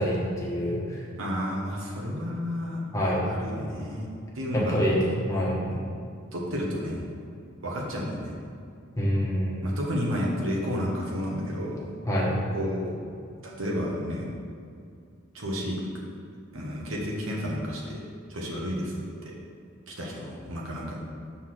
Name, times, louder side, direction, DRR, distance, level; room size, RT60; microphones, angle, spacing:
voice 1, 0.0-1.0 2.9-3.2 4.5-5.0 5.3-5.6 9.0-9.6 12.1-12.3, equal, 15° left, -5 dB, 1.4 m, -26 dB
voice 2, 1.2-2.8 3.2-4.1 4.3-4.8 5.7-5.8 6.3-7.1 7.6-8.4 9.6-11.9 12.4-13.0 13.4-14.3 15.3-15.8 16.5-18.0 18.3-19.3 19.9-21.0, equal, 90° right, -3 dB, 1.3 m, -31 dB
5.8 x 4.2 x 6.2 m, 2.4 s
head